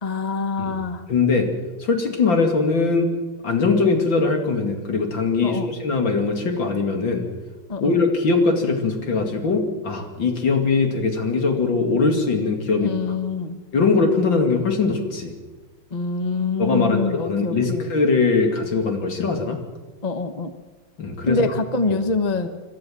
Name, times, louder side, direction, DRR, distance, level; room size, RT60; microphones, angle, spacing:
voice 1, 0.0-1.0 5.4-5.7 7.7-7.9 12.8-13.6 15.9-17.8 20.0-20.5 21.3-21.5 21.7-22.5, left 3 dB, 25° left, 9 dB, 0.9 m, -25 dB
voice 2, 1.1-1.5 1.8-3.1 3.4-7.2 7.8-13.2 13.7-15.3 16.6-19.6 21.0-21.5 21.9-22.0, left 4 dB, 70° left, 4 dB, 3.2 m, -21 dB
27.0 x 12.5 x 7.6 m, 1.3 s
omnidirectional pair, 2.2 m